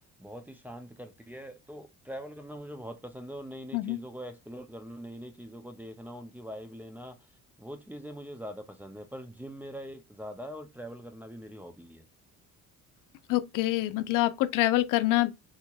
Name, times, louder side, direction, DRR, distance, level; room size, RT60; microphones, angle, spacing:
voice 1, 0.2-7.3 7.6-12.1, equal, 5° right, 0.4 m, -43 dB
voice 2, 13.3-15.3, left 17 dB, 85° left, 0.6 m, -26 dB
4.3 x 2.8 x 2.3 m
cardioid pair, 135°, 31 cm